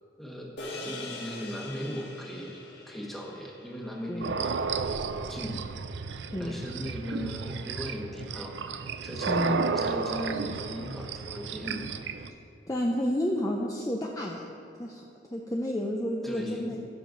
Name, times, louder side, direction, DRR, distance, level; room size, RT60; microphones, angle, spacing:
voice 1, 0.2-2.6 2.9-4.6 5.3-5.7 6.4-8.6 9.0-11.9 16.2-16.8, equal, ahead, -2 dB, 1.2 m, -38 dB
sound 1, 0.6-5.1, left 2 dB, 70° left, 1.6 m, -43 dB
sound 2, 4.2-12.3, right 5 dB, 75° right, 0.5 m, -33 dB
voice 2, 9.3-9.7 12.3-12.4 12.7-14.5 14.8-16.8, left 1 dB, 20° left, -1 dB, 0.6 m, -30 dB
15.5 x 6.6 x 3.9 m, 2.6 s
head